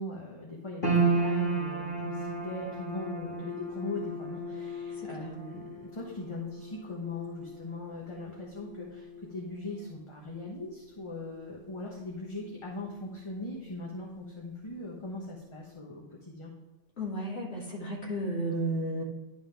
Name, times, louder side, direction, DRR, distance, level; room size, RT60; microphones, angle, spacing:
voice 1, 0.0-16.5, left 2 dB, 25° left, -2 dB, 1.1 m, -40 dB
sound 1, 0.8-13.2 13.5-14.4 14.9-15.0, right 3 dB, 45° left, 2.5 m, -35 dB
voice 2, 17.0-19.0, right 1 dB, 65° left, -5 dB, 2.8 m, -33 dB
11.0 x 5.7 x 3.4 m, 1.2 s
omnidirectional pair, 1.2 m